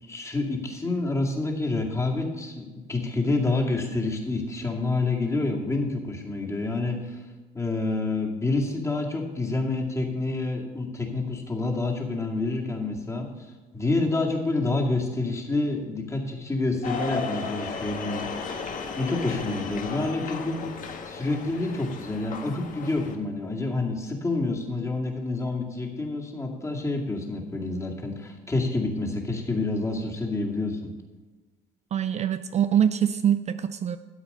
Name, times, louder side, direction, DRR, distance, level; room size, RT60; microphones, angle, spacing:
voice 1, 0.0-7.2 7.5-18.3 19.0-20.6 21.0-30.8, left 2 dB, 15° left, 0 dB, 2.2 m, -28 dB
sound 1, 16.8-23.2, left 4 dB, 50° left, 1.4 m, -35 dB
voice 2, 31.9-34.0, right 9 dB, 40° right, 11 dB, 0.4 m, -24 dB
13.0 x 8.1 x 5.4 m, 1.2 s
cardioid pair, 110°, 17 cm